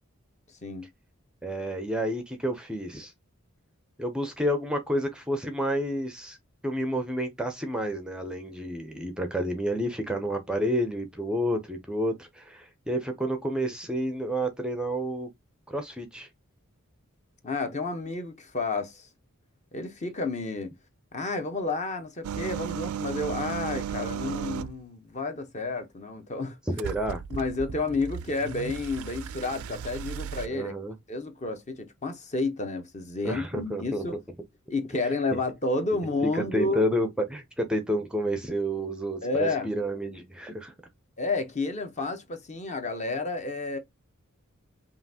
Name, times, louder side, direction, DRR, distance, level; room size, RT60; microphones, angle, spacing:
voice 1, 1.4-3.1 4.0-6.4 6.6-15.3 15.7-16.3 26.8-27.2 30.5-31.0 33.2-34.0 36.3-40.7, equal, 5° right, 0.5 m, -30 dB
voice 2, 17.4-19.1 19.7-20.7 21.1-26.6 27.3-30.7 31.1-34.2 34.7-36.8 39.2-39.7 41.2-43.8, left 3 dB, 35° left, 0.8 m, -31 dB
sound 1, 22.2-24.8 26.8-30.5, right 8 dB, 80° right, 0.4 m, -35 dB
5.6 x 2.4 x 2.7 m
head